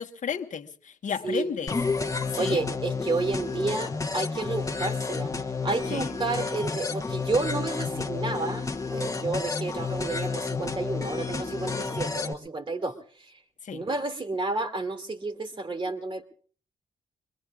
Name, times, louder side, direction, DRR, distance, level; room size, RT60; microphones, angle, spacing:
voice 1, 0.0-1.7 2.3-2.6 5.9-6.1 13.6-13.8, left 7 dB, 55° left, 5 dB, 1.3 m, -33 dB
sound 1, 1.7-12.3, left 4 dB, 20° left, 1.2 m, -31 dB
voice 2, 2.4-5.3 5.6-8.6 8.9-13.4 13.7-16.3, right 3 dB, 35° right, 7 dB, 2.5 m, -31 dB
25.5 x 21.5 x 2.4 m, 0.43 s
cardioid pair, 75°, 16 cm